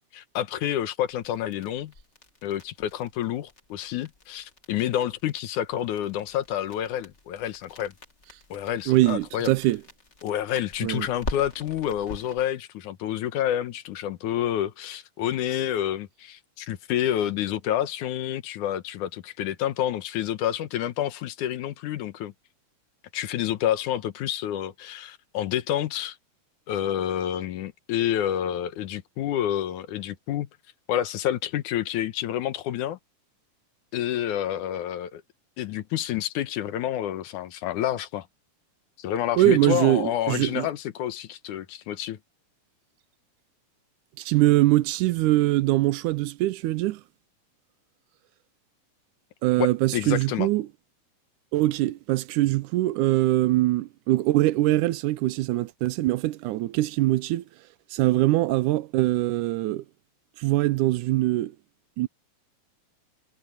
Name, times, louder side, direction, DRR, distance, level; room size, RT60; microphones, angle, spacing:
voice 1, 0.1-1.9 2.4-7.9 8.5-9.5 10.2-22.3 23.1-26.2 26.7-30.5 30.9-33.0 33.9-35.2 35.6-38.3 39.0-42.2 49.6-50.5, left 11 dB, 85° left, 2.6 m, -28 dB
sound 1, 1.1-12.4, left 2 dB, 25° left, 2.2 m, -43 dB
voice 2, 8.9-9.8 10.8-11.1 39.4-40.7 44.2-47.0 49.4-50.7 51.5-57.4 57.9-59.8 60.4-61.5 62.0-62.1, right 17 dB, 90° right, 2.2 m, -23 dB
omnidirectional pair, 3.4 m